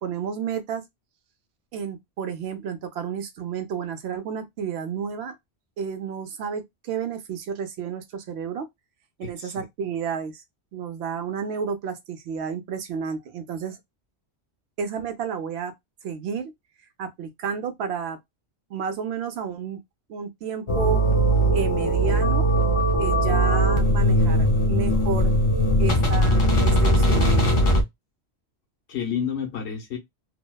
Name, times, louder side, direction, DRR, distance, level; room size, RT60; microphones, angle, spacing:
voice 1, 0.0-0.8 1.7-5.4 5.8-8.7 9.2-10.4 10.7-13.8 14.8-15.7 16.0-16.5 17.0-18.2 18.7-19.8 20.1-21.0 21.5-22.5 23.0-25.3 25.8-27.5, right 7 dB, 75° right, 0.8 m, -31 dB
voice 2, 9.2-9.6 28.9-30.0, left 8 dB, 75° left, 1.1 m, -30 dB
sound 1, 20.7-27.8, right 1 dB, 50° left, 0.3 m, -20 dB
2.7 x 2.0 x 2.2 m
omnidirectional pair, 1.1 m